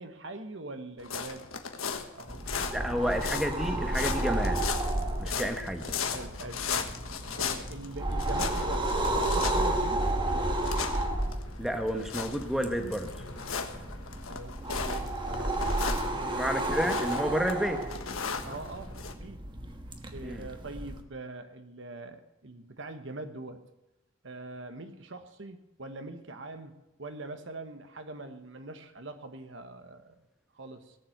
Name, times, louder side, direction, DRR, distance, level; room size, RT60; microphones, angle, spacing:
voice 1, 0.0-1.5 2.2-3.1 5.3-5.5 6.1-6.9 7.4-10.8 14.3-15.6 16.1-16.6 18.4-18.9 19.2-19.4 20.1-23.6 24.2-26.7 27.0-30.2 30.5-31.0, right 2 dB, 60° right, 8 dB, 1.1 m, -43 dB
sound 1, 1.0-19.1, left 6 dB, 85° left, 1.3 m, -37 dB
sound 2, 2.3-21.0, right 1 dB, 25° right, 1.2 m, -32 dB
voice 2, 2.7-4.6 5.2-5.8 11.6-13.1 16.4-17.8 20.2-20.5, equal, ahead, 5 dB, 1.0 m, -30 dB
18.0 x 7.4 x 7.8 m, 0.96 s
head